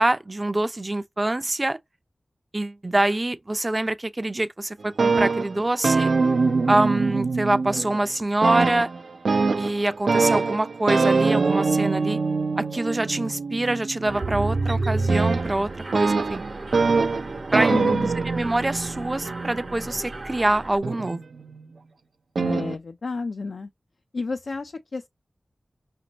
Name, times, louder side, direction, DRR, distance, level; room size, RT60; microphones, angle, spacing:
voice 1, 0.0-1.8 2.5-6.1 6.7-8.9 9.6-12.2 12.6-16.4 17.5-17.8 18.3-21.2, right 2 dB, 30° right, 0.5 m, -25 dB
sound 1, 4.8-8.1 8.4-20.0 20.8-21.7 22.4-22.7, right 4 dB, 90° right, 0.6 m, -24 dB
Mechanisms, 14.1-20.8, right 3 dB, 60° right, 0.9 m, -31 dB
voice 2, 17.7-18.1 22.4-23.7 24.1-25.1, left 3 dB, 70° left, 0.4 m, -30 dB
5.1 x 2.6 x 2.9 m
wide cardioid pair, 75°, 0 cm